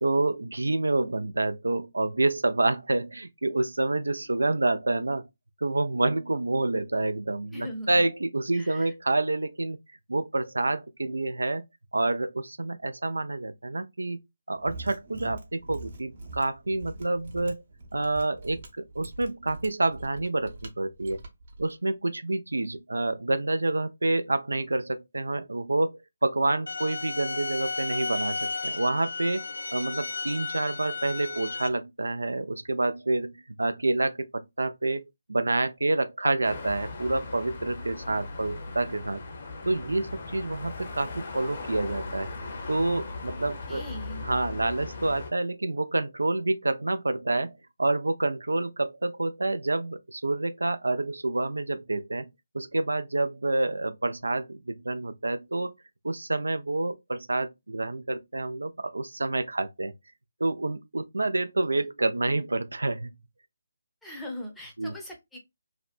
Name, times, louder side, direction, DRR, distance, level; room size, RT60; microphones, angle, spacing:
voice 1, 0.0-5.3 5.6-9.8 10.1-11.6 11.9-14.2 14.5-17.6 17.9-21.2 21.6-29.4 29.7-35.0 35.3-39.2 39.7-42.3 42.7-43.8 44.2-52.3 52.5-55.7 56.0-59.9 60.4-63.2 64.8-64.9, right 2 dB, 80° right, 0.3 m, -28 dB
voice 2, 7.5-8.0 8.5-8.9 43.7-44.2 61.7-61.9 64.0-65.4, equal, 5° left, 0.6 m, -40 dB
Mechanisms, 14.5-21.7, right 2 dB, 50° right, 0.7 m, -43 dB
sound 1, 26.7-31.7, left 4 dB, 75° left, 0.4 m, -34 dB
sound 2, 36.4-45.3, left 3 dB, 45° left, 0.7 m, -38 dB
2.5 x 2.1 x 2.4 m
figure-of-eight pair, 150°, 0 cm